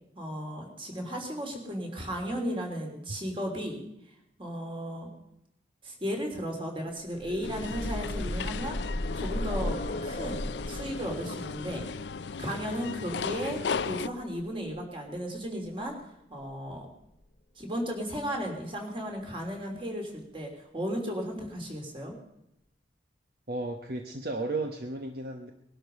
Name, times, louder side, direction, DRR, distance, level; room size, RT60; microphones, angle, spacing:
voice 1, 0.1-3.8 4.4-5.1 5.8-8.8 9.1-11.8 12.4-15.9 16.3-16.9 17.6-22.2, equal, 30° right, 2 dB, 3.4 m, -35 dB
sound 1, 7.0-14.8 15.9-16.0 16.4-16.5, left 1 dB, 45° left, 0.9 m, -36 dB
sound 2, 7.4-14.1, left 5 dB, 85° left, 0.5 m, -36 dB
voice 2, 23.5-25.5, right 2 dB, 60° right, 4 dB, 1.2 m, -34 dB
20.5 x 12.0 x 5.4 m, 0.81 s
head